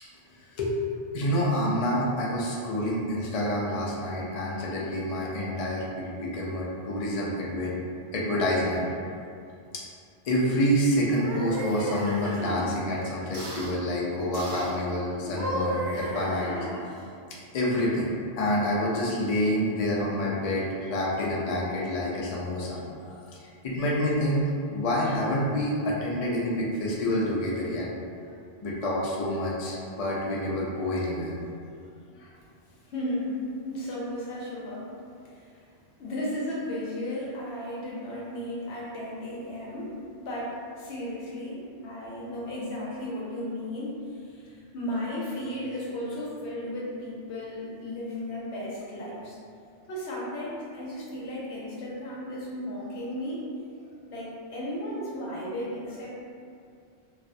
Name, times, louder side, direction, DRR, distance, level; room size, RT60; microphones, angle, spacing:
voice 1, 1.1-7.7 8.1-8.8 10.2-16.5 17.5-18.1 18.4-23.2 23.6-27.9 28.6-31.3 32.2-32.3, equal, 60° left, -4 dB, 0.4 m, -27 dB
sound 1, 11.0-12.7 13.3-13.7 14.3-14.8 15.2-17.0, right 1 dB, 75° right, 0.8 m, -34 dB
voice 2, 32.9-33.3 33.6-34.9 35.4-35.5 36.0-49.4 49.9-53.4 54.1-56.2, left 1 dB, 80° left, -5 dB, 0.9 m, -35 dB
2.3 x 2.0 x 2.5 m, 2.4 s
omnidirectional pair, 1.1 m